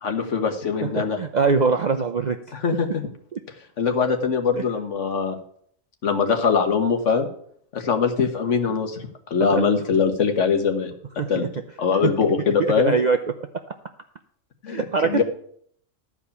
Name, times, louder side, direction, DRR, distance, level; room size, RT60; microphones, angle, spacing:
voice 1, 0.0-1.2 2.5-3.0 3.8-5.4 6.0-7.3 7.7-9.0 9.3-10.9 11.3-11.4 11.8-12.9 14.6-15.2, left 6 dB, 65° left, 5 dB, 1.5 m, -22 dB
voice 2, 1.0-2.4 3.3-3.4 4.6-4.7 9.5-9.7 11.2-11.5 12.0-12.1 12.9-13.2 14.7-15.2, right 5 dB, 55° right, 7 dB, 0.5 m, -22 dB
12.5 x 4.9 x 7.0 m, 0.63 s
omnidirectional pair, 1.4 m